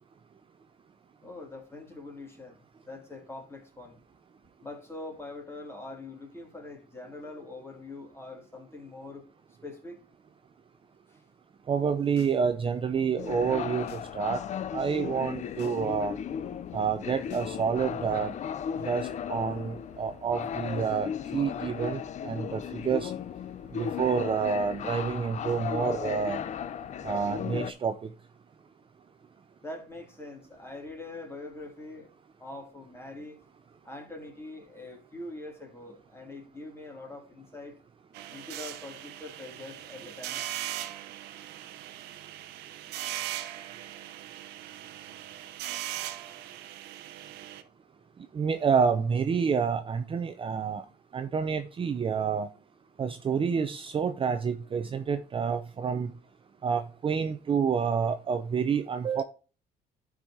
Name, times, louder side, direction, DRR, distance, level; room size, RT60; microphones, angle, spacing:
voice 1, 1.2-4.0 4.6-9.3 9.6-10.0 11.1-11.2 18.8-18.9 29.6-32.1 32.4-33.4 33.8-37.8 38.3-40.5 47.4-47.7, left 2 dB, 15° left, 2.6 m, -43 dB
voice 2, 11.7-14.4 14.7-16.2 16.7-18.3 18.8-23.1 23.7-26.4 27.0-28.1 48.3-50.8 51.1-52.5 53.0-56.1 56.6-59.2, right 6 dB, 30° right, 0.6 m, -28 dB
sound 1, 11.8-12.4 12.7-14.1 14.4-14.8 15.2-15.8 16.1-18.2, left 5 dB, 80° left, 2.0 m, -55 dB
sound 2, 13.2-27.7, left 8 dB, 45° left, 0.5 m, -36 dB
sound 3, 38.1-47.6, right 13 dB, 80° right, 0.7 m, -39 dB
11.5 x 4.8 x 2.8 m
cardioid pair, 110°, 17 cm